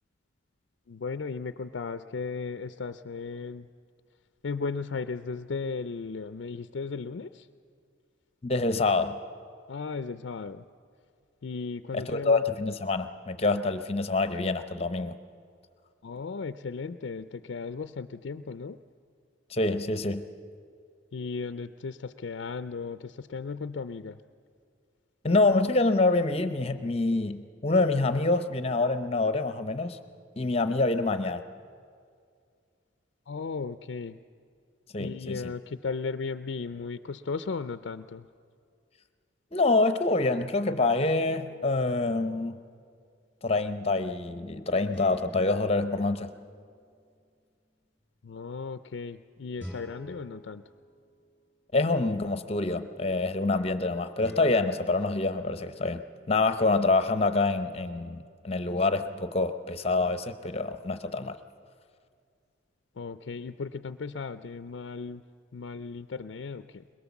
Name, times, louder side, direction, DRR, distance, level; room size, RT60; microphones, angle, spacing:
voice 1, 0.9-3.7 4.4-7.5 9.7-10.6 11.4-12.4 16.0-18.8 21.1-24.2 33.3-34.2 35.0-38.3 48.2-50.6 63.0-65.2 65.5-66.8, left 4 dB, 70° left, 11 dB, 0.4 m, -36 dB
voice 2, 8.4-9.2 11.9-15.2 19.5-20.2 25.2-30.0 30.4-31.4 34.9-35.4 39.5-42.6 43.4-46.3 51.7-56.0 56.3-61.4, left 3 dB, 30° left, 10 dB, 0.7 m, -26 dB
sound 1, 41.0-42.0 44.9-47.1 49.6-51.7 54.2-56.4, equal, 5° right, 3.7 m, -49 dB
22.0 x 21.5 x 7.1 m, 2.3 s
head